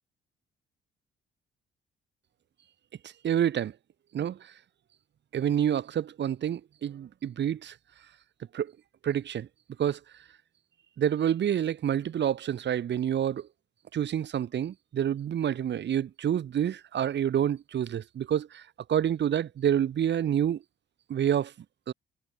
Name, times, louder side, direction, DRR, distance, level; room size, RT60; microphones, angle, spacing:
voice 1, 3.0-3.7 4.1-4.5 5.3-7.8 8.5-8.7 9.0-9.5 9.8-10.0 11.0-13.5 13.9-20.6 21.1-21.5 21.9-22.0, right 9 dB, 60° right, 3.4 m, -28 dB
cardioid pair, 90°, 20 cm